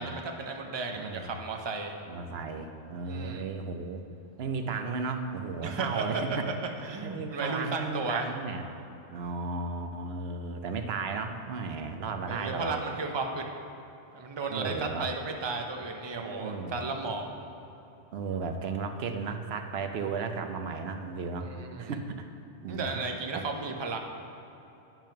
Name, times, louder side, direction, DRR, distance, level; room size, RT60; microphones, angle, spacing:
voice 1, 0.0-2.0 3.1-3.4 5.6-6.5 6.8-8.3 12.3-13.5 14.1-17.2 21.4-22.0 22.7-24.0, right 3 dB, 30° right, 3 dB, 0.6 m, -34 dB
voice 2, 0.9-1.4 2.1-4.0 4.4-6.3 7.0-8.6 9.1-12.8 14.5-15.1 16.2-16.9 18.1-21.5 21.8-22.3 22.6-23.0 23.3-23.4, right 4 dB, 65° right, 6 dB, 0.9 m, -34 dB
8.8 x 5.9 x 5.8 m, 3.0 s
omnidirectional pair, 1.2 m